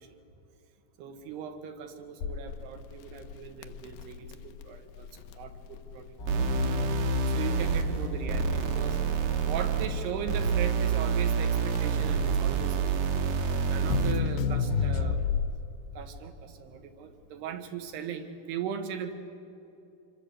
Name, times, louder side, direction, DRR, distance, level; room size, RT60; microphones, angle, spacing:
voice 1, 1.0-5.1 5.4-6.1 7.3-9.0 9.4-13.0 13.7-15.2 16.0-19.1, right 7 dB, 85° right, 7 dB, 3.7 m, -39 dB
Crackle, 2.2-15.8, left 6 dB, 80° left, 2.2 m, -33 dB
sound 1, 6.2-15.1, right 4 dB, 40° left, 1.3 m, -39 dB
sound 2, 6.3-14.3, right 5 dB, 65° right, 2.3 m, -28 dB
26.5 x 23.0 x 8.3 m, 2.8 s
omnidirectional pair, 4.6 m